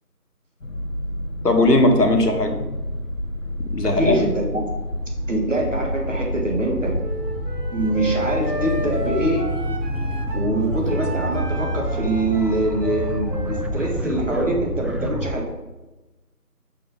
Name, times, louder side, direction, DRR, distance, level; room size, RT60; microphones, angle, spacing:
sound 1, 0.6-15.4, equal, 55° left, 0.9 m, -28 dB
voice 1, 1.4-2.7 3.7-4.2, left 1 dB, 85° left, 4 dB, 1.2 m, -18 dB
sound 2, 2.9-15.4, equal, 5° right, 0.3 m, -36 dB
voice 2, 4.0-4.6 5.3-7.0 7.7-9.6 10.3-15.4, right 1 dB, 50° right, -1 dB, 1.5 m, -24 dB
Wind instrument woodwind instrument, 7.0-10.5 10.9-14.6, right 1 dB, 90° right, 1.1 m, -33 dB
6.8 x 3.6 x 4.0 m, 1.1 s
figure-of-eight pair, 175°, 47 cm